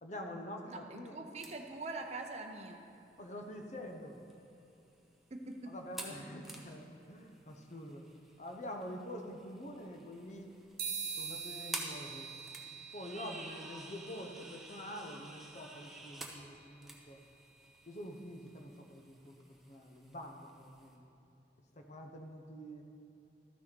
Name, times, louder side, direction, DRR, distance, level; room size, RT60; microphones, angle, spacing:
voice 1, 0.0-1.2 3.2-4.2 5.7-8.0 8.4-10.5 11.2-12.3 12.9-17.2 17.9-19.4 19.7-21.0 21.8-22.8, equal, 40° left, 3 dB, 0.8 m, -46 dB
voice 2, 0.7-2.8 5.3-5.7, right 3 dB, 35° right, 3 dB, 0.6 m, -43 dB
sound 1, 1.4-21.0, right 1 dB, ahead, 0.7 m, -51 dB
sound 2, 10.8-18.5, right 6 dB, 50° right, 1.4 m, -46 dB
13.0 x 6.2 x 4.5 m, 2.9 s
head